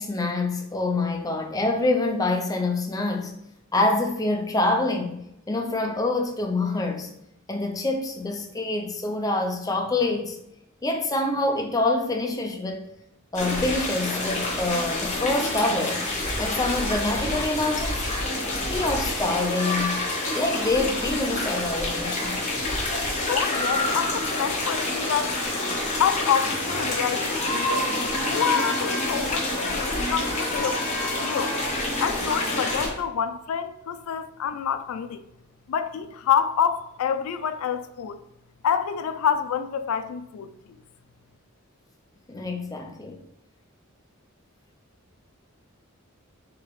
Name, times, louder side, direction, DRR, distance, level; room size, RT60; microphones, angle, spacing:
voice 1, 0.0-3.4 3.7-5.2 5.5-7.1 7.5-10.4 10.8-12.8 13.3-16.0 16.4-18.1 18.7-20.0 20.3-22.4 42.3-43.2, left 2 dB, 15° left, 0.4 m, -26 dB
sound 1, 13.3-32.9, left 1 dB, 35° left, 1.0 m, -27 dB
voice 2, 23.3-25.4 26.0-27.9 28.3-30.8 31.2-31.6 32.0-35.2 35.7-38.2 38.6-40.5, left 8 dB, 85° left, 0.3 m, -27 dB
4.8 x 2.8 x 3.1 m
head